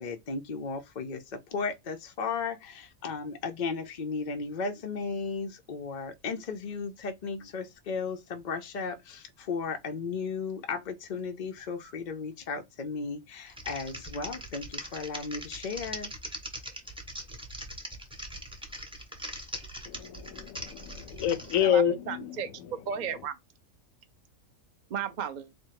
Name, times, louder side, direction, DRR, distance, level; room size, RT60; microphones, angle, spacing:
voice 1, 0.0-16.1, left 5 dB, 55° left, 0.5 m, -35 dB
Typing, 13.5-21.6, right 1 dB, 5° right, 0.7 m, -41 dB
voice 2, 19.9-22.7, left 9 dB, 75° left, 1.0 m, -28 dB
voice 3, 21.6-22.5 22.9-23.4 24.9-25.5, right 8 dB, 45° right, 0.7 m, -34 dB
4.4 x 2.1 x 4.6 m
omnidirectional pair, 1.5 m